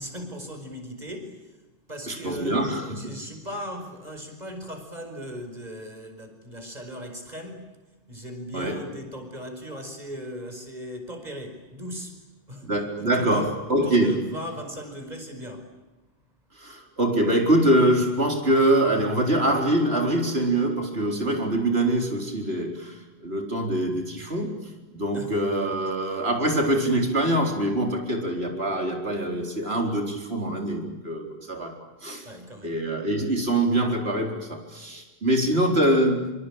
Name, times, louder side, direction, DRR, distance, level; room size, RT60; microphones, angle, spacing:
voice 1, 0.0-1.6 1.9-2.6 3.0-7.8 8.1-12.2 12.5-12.7 13.0-15.7 25.1-25.4 32.2-32.8, equal, 40° right, 5 dB, 5.4 m, -38 dB
voice 2, 2.1-3.1 8.5-8.8 12.6-14.2 16.6-24.6 24.9-31.7 32.0-32.3 32.6-36.3, right 1 dB, 75° right, 2 dB, 4.6 m, -24 dB
27.0 x 24.5 x 8.9 m, 1.1 s
omnidirectional pair, 1.1 m